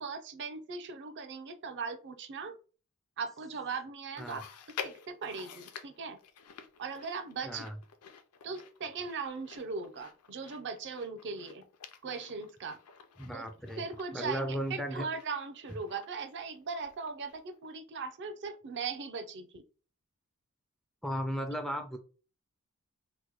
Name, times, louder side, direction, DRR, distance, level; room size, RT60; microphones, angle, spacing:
voice 1, 0.0-2.6 3.2-4.4 4.8-6.2 6.8-7.7 8.4-11.6 12.0-12.8 13.3-13.4 13.8-19.6, right 5 dB, 55° right, 8 dB, 0.5 m, -39 dB
Chewing mastication, 4.2-17.7 18.0-18.1 18.9-19.0, left 7 dB, 80° left, 0.5 m, -50 dB
voice 2, 7.4-7.8 13.2-13.9 14.1-15.0 15.7-15.8 21.0-22.0, equal, ahead, 5 dB, 0.3 m, -35 dB
3.0 x 2.1 x 3.8 m, 0.36 s
head